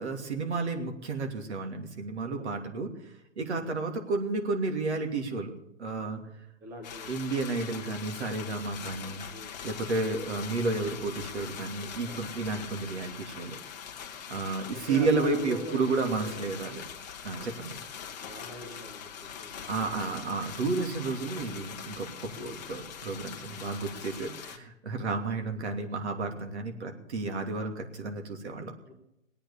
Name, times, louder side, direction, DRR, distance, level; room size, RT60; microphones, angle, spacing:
voice 1, 0.0-2.9 3.4-5.5 5.8-6.2 7.1-9.2 9.6-13.6 14.3-16.8 17.2-17.7 19.7-28.7, right 3 dB, 55° right, 4 dB, 2.8 m, -32 dB
voice 2, 6.6-7.2 9.3-9.5 12.1-12.3 14.2-14.3 14.9-16.5 17.3-17.5 18.2-19.6 19.9-20.5 22.4-22.6 24.9-25.0 28.9-29.0, equal, 5° right, 1 dB, 0.7 m, -43 dB
sound 1, 6.8-24.6, left 8 dB, 30° left, 1.3 m, -42 dB
20.5 x 8.9 x 6.9 m, 0.85 s
hypercardioid pair, 155°, 40 cm